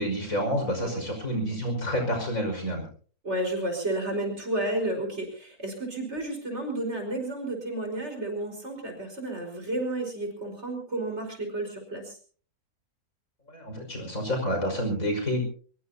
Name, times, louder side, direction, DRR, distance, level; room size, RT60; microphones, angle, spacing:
voice 1, 0.0-2.8 13.5-15.5, equal, 65° left, 3 dB, 6.0 m, -28 dB
voice 2, 3.2-12.2, right 1 dB, 50° right, 3 dB, 5.2 m, -32 dB
22.5 x 22.0 x 2.8 m, 0.42 s
omnidirectional pair, 1.5 m